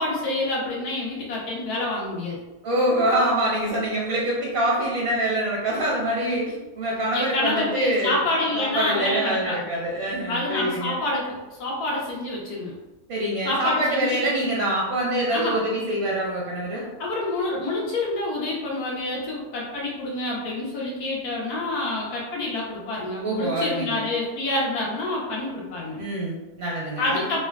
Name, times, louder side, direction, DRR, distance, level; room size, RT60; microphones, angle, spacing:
voice 1, 0.0-2.4 7.1-9.6 10.3-12.7 13.4-14.3 15.3-15.6 17.0-26.0 27.0-27.4, left 2 dB, 80° left, -3 dB, 1.3 m, -27 dB
voice 2, 2.6-8.2 8.5-11.0 13.1-16.9 23.2-24.0 26.0-27.2, right 1 dB, 60° right, -4 dB, 0.7 m, -25 dB
3.6 x 2.2 x 2.3 m, 1.1 s
omnidirectional pair, 1.6 m